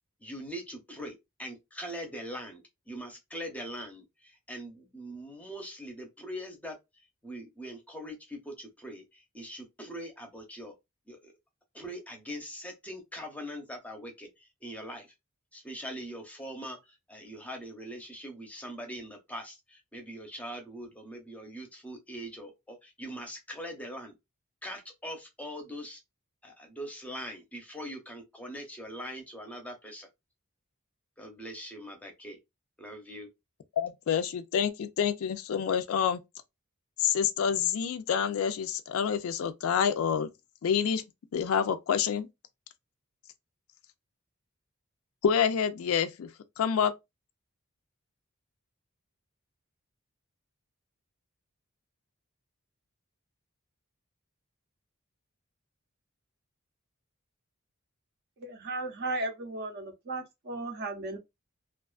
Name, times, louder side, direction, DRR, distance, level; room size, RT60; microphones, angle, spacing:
voice 1, 0.2-2.6 2.9-6.8 7.2-10.7 11.1-11.3 11.7-15.1 15.5-16.8 17.1-24.2 24.6-26.0 26.4-30.1 31.2-32.4 32.8-33.3, equal, 5° left, 0.6 m, -42 dB
voice 2, 33.8-36.2 37.0-40.3 40.6-41.0 41.3-42.3 45.2-46.3 46.6-46.9, left 7 dB, 75° left, 0.3 m, -27 dB
voice 3, 58.4-61.2, right 2 dB, 50° right, 0.6 m, -35 dB
2.4 x 2.3 x 2.3 m
head